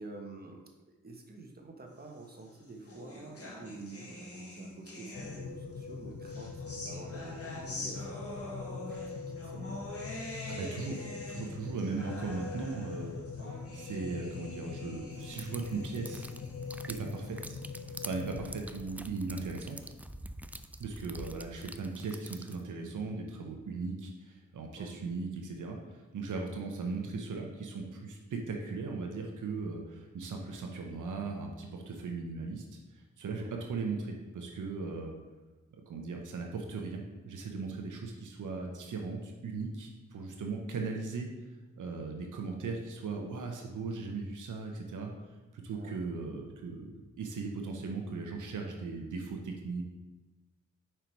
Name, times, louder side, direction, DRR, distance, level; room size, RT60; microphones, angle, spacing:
voice 1, 0.0-10.0 13.4-13.6 24.7-24.9 33.4-33.6 45.7-46.1, right 3 dB, 30° right, 1 dB, 1.2 m, -49 dB
sound 1, 2.3-5.7 6.2-17.7, left 1 dB, 50° left, 1.6 m, -45 dB
sound 2, 5.1-18.5, left 5 dB, 70° left, 0.6 m, -43 dB
voice 2, 10.5-13.2 13.7-16.3 16.9-19.8 20.8-32.6 32.9-35.1 35.9-41.3 41.8-45.1 45.5-49.8, right 4 dB, 90° right, 2 dB, 0.8 m, -38 dB
sound 3, 15.2-22.6, right 1 dB, 5° right, 0.3 m, -46 dB
5.2 x 4.5 x 4.5 m, 1.2 s
cardioid pair, 55°, 30 cm